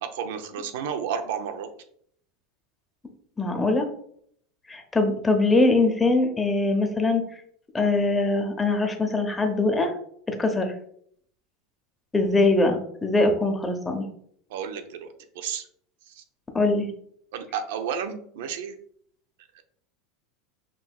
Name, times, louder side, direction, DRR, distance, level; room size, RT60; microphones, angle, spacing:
voice 1, 0.0-1.7 14.5-15.7 16.1-16.2 17.3-18.8 19.5-19.6, right 7 dB, 75° right, 7 dB, 0.6 m, -32 dB
voice 2, 3.4-3.9 4.7-7.2 7.7-9.9 10.3-10.7 12.1-14.1 16.5-16.9, left 2 dB, 15° left, 5 dB, 0.8 m, -22 dB
6.0 x 2.8 x 2.3 m, 0.64 s
supercardioid pair, 110°, 0 cm